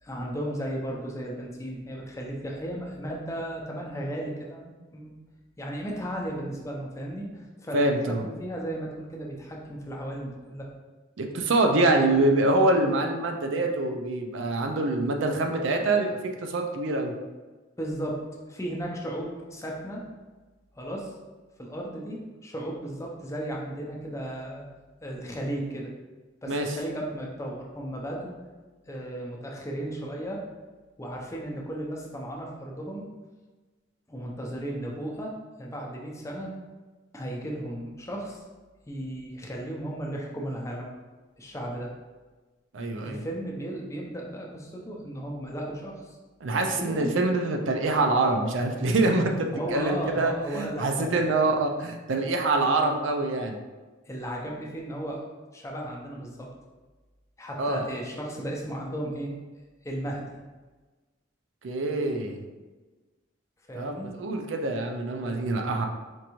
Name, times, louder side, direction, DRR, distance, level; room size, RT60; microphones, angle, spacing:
voice 1, 0.0-5.1 5.6-10.7 17.8-18.2 18.5-20.0 20.7-21.1 21.6-24.7 25.0-25.9 26.4-28.3 28.9-30.5 31.0-33.1 34.1-36.5 37.1-38.4 38.9-40.9 41.4-41.9 43.0-46.2 46.6-47.1 49.5-51.4 54.1-55.2 55.5-56.5 57.4-59.3 59.8-60.3 63.7-64.2, right 1 dB, 15° left, -1 dB, 0.5 m, -35 dB
voice 2, 7.7-8.3 11.2-17.1 26.5-26.7 42.7-43.2 46.4-53.6 57.6-57.8 61.6-62.4 63.7-65.9, right 2 dB, 75° right, 3 dB, 0.5 m, -25 dB
4.5 x 2.5 x 2.9 m, 1.3 s
head